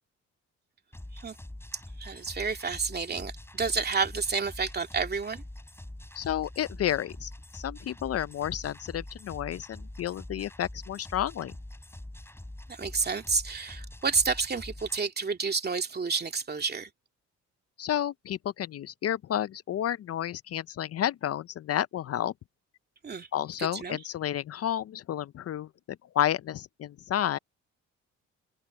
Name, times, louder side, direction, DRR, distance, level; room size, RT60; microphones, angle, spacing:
sound 1, 0.9-15.0, left 1 dB, 10° left, 6.6 m, -44 dB
voice 1, 2.0-5.4 12.7-16.9 23.0-23.3 23.6-24.0, right 5 dB, 35° right, 2.5 m, -30 dB
voice 2, 6.2-11.5 17.8-22.3 23.3-25.7 26.1-27.4, left 11 dB, 50° left, 0.5 m, -31 dB
cardioid pair, 90°, 30 cm